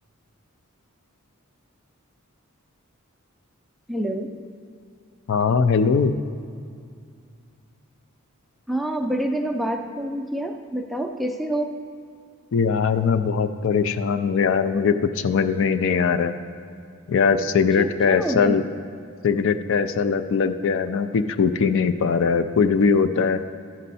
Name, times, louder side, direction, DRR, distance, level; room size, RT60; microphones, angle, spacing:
voice 1, 3.9-4.3 8.7-11.8 17.8-18.6, right 1 dB, ahead, 5 dB, 0.4 m, -27 dB
voice 2, 5.3-6.1 12.5-16.3 17.1-18.6 19.2-23.4, left 5 dB, 65° left, 11 dB, 0.4 m, -21 dB
12.5 x 5.4 x 4.1 m, 2.4 s
head